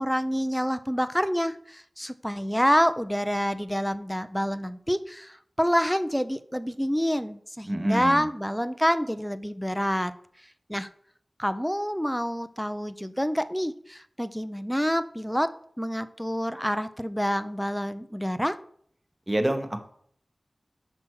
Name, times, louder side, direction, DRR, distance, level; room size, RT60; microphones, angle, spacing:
voice 1, 0.0-10.1 10.7-10.9 11.4-15.5 15.8-18.6, equal, ahead, 12 dB, 0.4 m, -27 dB
voice 2, 7.7-8.2 19.3-19.9, right 1 dB, 25° right, 6 dB, 0.9 m, -27 dB
5.8 x 4.5 x 6.2 m, 0.63 s
wide cardioid pair, 65°, 0 cm